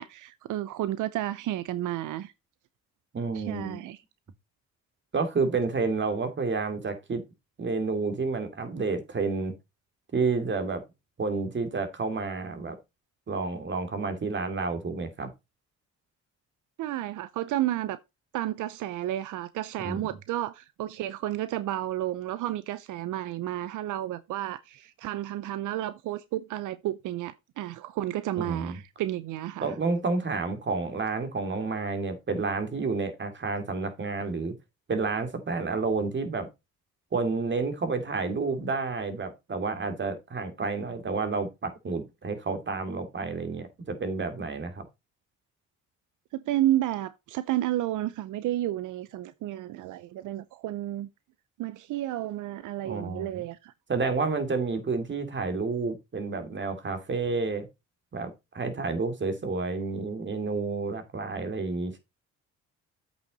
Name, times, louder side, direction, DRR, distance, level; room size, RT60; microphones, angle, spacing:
voice 1, 0.0-2.3 3.3-4.0 16.8-18.0 18.3-29.7 46.3-51.1 51.6-53.7, right 14 dB, 80° right, 0.6 m, -31 dB
voice 2, 3.1-3.8 5.1-7.2 7.6-9.5 10.1-10.8 11.2-12.8 13.3-15.3 19.8-20.1 28.4-28.8 29.6-34.5 34.9-36.5 37.1-44.8 52.8-53.4 53.9-57.7 58.1-62.0, right 4 dB, 40° right, 2.7 m, -30 dB
8.3 x 6.4 x 3.9 m
cardioid pair, 90°, 30 cm